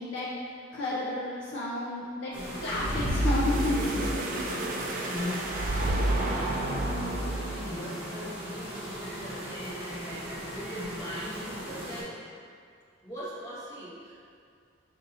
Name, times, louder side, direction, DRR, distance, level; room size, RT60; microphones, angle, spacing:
voice 1, 0.0-2.3 2.6-3.9, left 2 dB, 65° left, -6 dB, 0.5 m, -31 dB
sound 1, 2.3-12.0, equal, 10° right, 1.1 m, -37 dB
sound 2, 2.6-7.8, right 1 dB, 45° right, 0.4 m, -30 dB
voice 2, 5.4-12.2 13.0-14.1, equal, 15° left, -12 dB, 1.5 m, -43 dB
5.9 x 2.7 x 2.6 m, 2.2 s
head